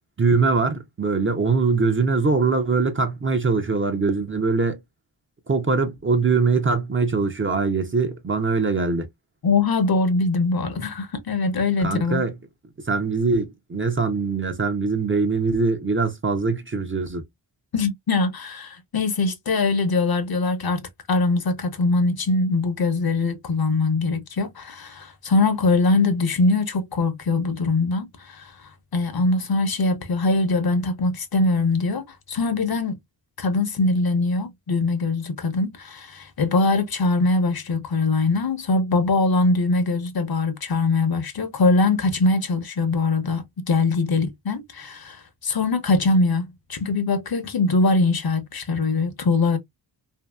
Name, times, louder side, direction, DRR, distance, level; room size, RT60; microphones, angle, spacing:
voice 1, 0.2-4.8 5.5-9.1 11.8-12.3 12.9-17.2, right 4 dB, 25° right, 0.6 m, -22 dB
voice 2, 9.4-12.2 17.7-28.5 28.9-33.0 33.4-49.6, left 3 dB, 50° left, 0.8 m, -22 dB
2.7 x 2.7 x 2.2 m
cardioid pair, 70°, 46 cm